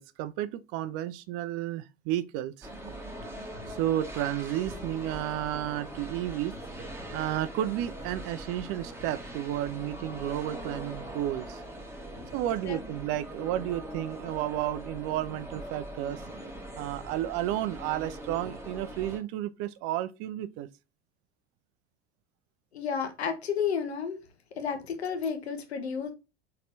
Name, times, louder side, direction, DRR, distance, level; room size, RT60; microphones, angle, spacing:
voice 1, 0.0-2.7 3.7-6.6 7.1-11.6 12.3-16.2 16.8-20.7, right 13 dB, 45° right, 0.4 m, -32 dB
sound 1, 2.6-19.2, right 1 dB, 10° right, 1.5 m, -41 dB
voice 2, 22.7-24.2 24.6-26.1, left 6 dB, 80° left, 1.0 m, -32 dB
4.0 x 3.2 x 2.7 m
figure-of-eight pair, 70°, 32 cm